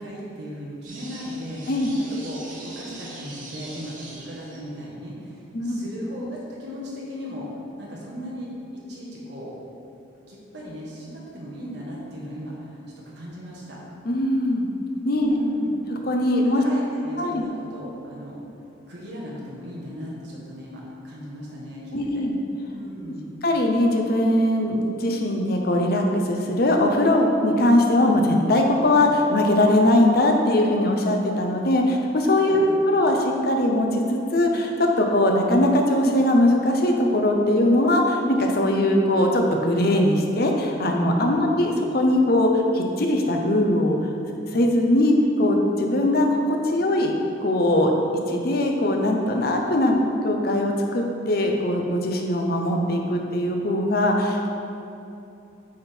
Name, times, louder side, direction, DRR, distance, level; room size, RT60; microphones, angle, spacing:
voice 1, 0.0-7.5 7.8-8.5 8.9-9.5 10.3-13.8 15.2-15.8 16.4-18.4 18.9-22.1 22.7-23.4 32.5-32.8 41.2-41.5, equal, 60° right, -4 dB, 1.5 m, -37 dB
sound 1, 0.8-4.9, right 2 dB, 40° right, 1.0 m, -42 dB
voice 2, 5.5-5.9 14.0-14.6 15.0-15.3 15.9-16.6 17.2-17.5 21.9-22.4 23.4-44.0 44.5-47.1 47.4-47.9 48.3-50.0 50.2-54.5, left 1 dB, 50° left, 2 dB, 0.7 m, -21 dB
8.7 x 3.6 x 4.4 m, 2.8 s
head